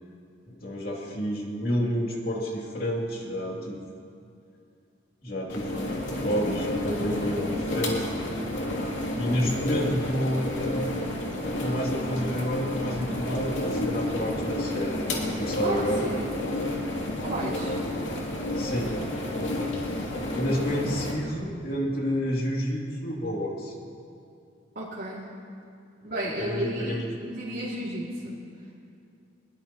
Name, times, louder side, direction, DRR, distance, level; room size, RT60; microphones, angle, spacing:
voice 1, 0.5-3.8 5.2-8.1 9.1-10.5 11.6-15.0 15.4-16.1 17.8-18.0 18.6-18.9 19.8-20.0 20.3-23.7 26.4-27.0, equal, 55° left, -2 dB, 2.7 m, -29 dB
sound 1, 5.5-21.1, left 1 dB, 85° left, 2.7 m, -30 dB
voice 2, 15.6-16.3 17.1-17.7 24.7-25.3 26.0-28.4, right 1 dB, 60° right, -8 dB, 2.4 m, -33 dB
22.5 x 21.0 x 3.0 m, 2.5 s
head